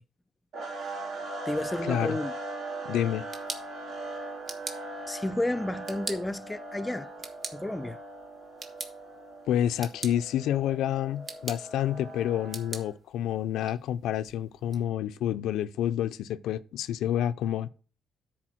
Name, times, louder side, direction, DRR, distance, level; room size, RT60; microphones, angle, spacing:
sound 1, 0.5-12.9, right 2 dB, 70° right, 2.4 m, -40 dB
voice 1, 1.5-2.3 5.1-7.1 7.5-8.0, left 1 dB, 15° left, 0.4 m, -31 dB
voice 2, 2.8-3.2 9.5-17.7, left 11 dB, 85° left, 0.4 m, -29 dB
sound 2, 3.0-14.8, right 3 dB, 45° right, 1.4 m, -44 dB
10.0 x 4.3 x 6.1 m
cardioid pair, 90°, 0 cm